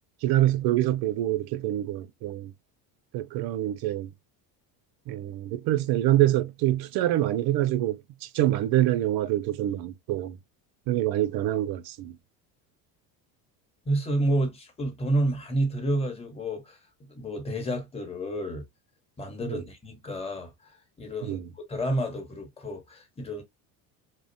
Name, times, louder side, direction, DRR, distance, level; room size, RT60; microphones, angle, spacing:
voice 1, 0.2-2.5 3.1-4.1 5.1-10.4 10.9-12.2 19.5-19.6 21.2-21.5, right 14 dB, 55° right, 0.5 m, -26 dB
voice 2, 13.9-16.8 17.1-18.6 19.2-23.4, right 1 dB, 15° left, 0.9 m, -30 dB
2.4 x 2.1 x 2.5 m
supercardioid pair, 85°, 46 cm